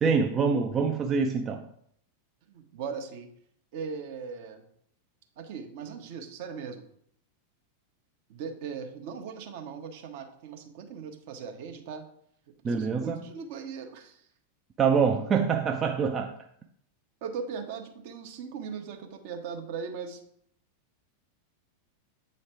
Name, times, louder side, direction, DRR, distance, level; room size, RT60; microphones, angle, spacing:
voice 1, 0.0-1.7 12.6-13.3 14.8-16.4, right 5 dB, 25° right, 3 dB, 0.4 m, -25 dB
voice 2, 2.5-3.3 3.7-4.6 5.4-6.8 8.3-12.0 12.8-14.3 17.2-20.2, right 6 dB, 50° right, 4 dB, 1.0 m, -39 dB
7.9 x 3.2 x 4.4 m, 0.68 s
figure-of-eight pair, 90°, 0 cm